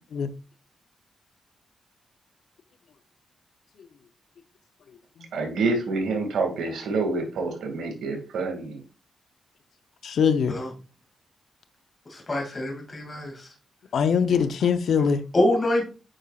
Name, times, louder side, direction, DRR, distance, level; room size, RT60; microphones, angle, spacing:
voice 1, 5.3-8.8, right 3 dB, 85° right, 2.2 m, -27 dB
voice 2, 10.0-10.6 13.9-15.2, left 6 dB, 75° left, 0.7 m, -22 dB
voice 3, 12.1-13.5 14.3-14.4 15.0-15.1 15.3-15.8, left 1 dB, 30° left, 2.4 m, -25 dB
8.8 x 5.4 x 2.4 m
cardioid pair, 85°, 0 cm